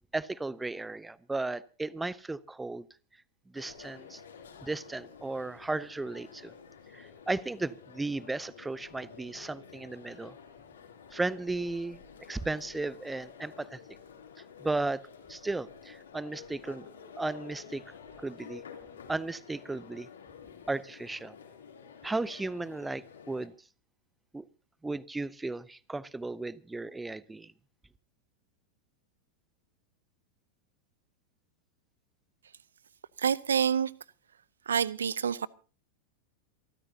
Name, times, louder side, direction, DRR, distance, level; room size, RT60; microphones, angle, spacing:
voice 1, 0.1-2.9 3.5-4.2 4.6-6.5 6.9-10.4 11.1-12.0 12.3-13.8 14.6-15.0 15.3-16.9 17.2-17.8 18.2-18.6 19.1-20.1 20.7-21.3 22.0-23.5 24.3-24.5 24.8-27.5, right 2 dB, 10° right, 0.7 m, -35 dB
sound 1, 3.5-23.5, left 7 dB, 65° left, 3.1 m, -51 dB
voice 2, 33.2-33.9 34.7-35.5, right 7 dB, 70° right, 0.6 m, -27 dB
28.0 x 13.5 x 2.8 m
figure-of-eight pair, 90°, 0 cm